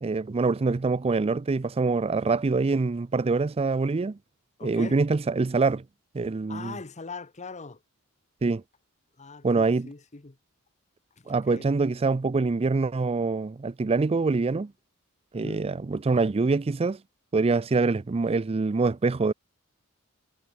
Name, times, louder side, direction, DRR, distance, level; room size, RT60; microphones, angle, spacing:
voice 1, 0.0-4.2 4.6-5.8 6.1-6.8 8.4-8.6 9.4-9.9 11.3-14.7 15.3-17.0 17.3-19.3, right 3 dB, 25° right, 0.4 m, -25 dB
voice 2, 4.6-5.0 6.5-7.8 9.2-10.4 11.2-11.7 15.3-15.7, left 4 dB, 35° left, 1.1 m, -41 dB
head